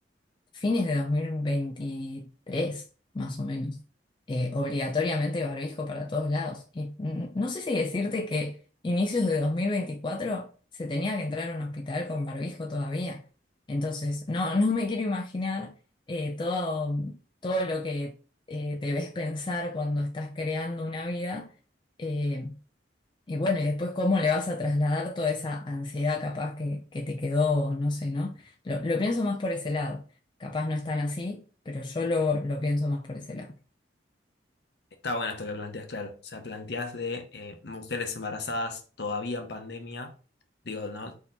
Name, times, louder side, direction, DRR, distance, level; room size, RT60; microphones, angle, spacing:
voice 1, 0.5-2.8 3.1-3.8 4.3-8.6 8.8-13.2 13.7-15.7 16.1-18.1 18.5-21.5 22.0-22.6 23.3-30.0 30.4-33.5, left 2 dB, 25° left, 0.4 m, -29 dB
voice 2, 35.0-40.1 40.6-41.1, left 3 dB, 60° left, 0.8 m, -34 dB
4.3 x 2.9 x 3.9 m
head